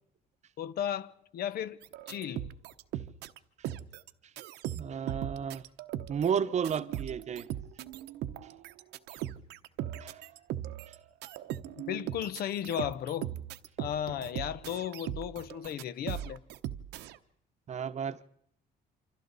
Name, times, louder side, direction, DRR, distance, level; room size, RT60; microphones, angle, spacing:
voice 1, 0.6-1.8 2.1-2.5 11.8-13.3 13.8-16.4, left 10 dB, 65° left, 1.0 m, -35 dB
sound 1, 1.8-3.4 3.6-4.1 4.4-17.2, right 12 dB, 85° right, 1.0 m, -39 dB
voice 2, 4.7-5.6 6.1-7.5 10.0-10.2 17.7-18.2, right 7 dB, 45° right, 0.9 m, -32 dB
28.0 x 26.0 x 4.1 m
cardioid pair, 110°, 17 cm